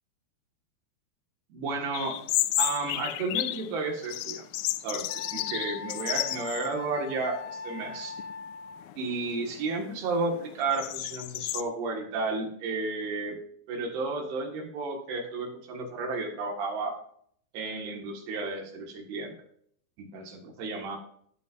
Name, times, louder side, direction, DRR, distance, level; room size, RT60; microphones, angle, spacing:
voice 1, 1.5-2.2 2.6-4.5 4.8-8.2 9.0-13.4 13.7-16.9 17.5-19.3 20.0-21.0, right 3 dB, 80° right, 1 dB, 3.8 m, -32 dB
sound 1, 1.9-3.7 4.0-6.7 7.1-7.2 7.9-8.3 8.8-11.6, left 16 dB, 85° left, 2.0 m, -32 dB
Wind instrument woodwind instrument, 5.1-8.9, left 4 dB, 65° left, 2.5 m, -41 dB
16.0 x 8.7 x 2.6 m, 0.63 s
omnidirectional pair, 4.6 m